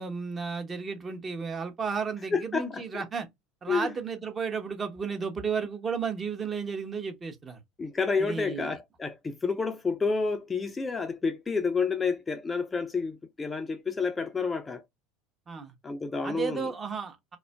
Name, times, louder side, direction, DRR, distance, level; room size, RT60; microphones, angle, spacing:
voice 1, 0.0-3.3 3.6-7.6 8.2-8.8 15.5-15.7 16.2-17.4, right 5 dB, 30° right, 0.8 m, -33 dB
voice 2, 2.3-3.0 3.7-3.9 7.8-14.8 15.8-16.7, left 4 dB, 20° left, 0.4 m, -29 dB
2.4 x 2.0 x 3.3 m
hypercardioid pair, 80°, 0 cm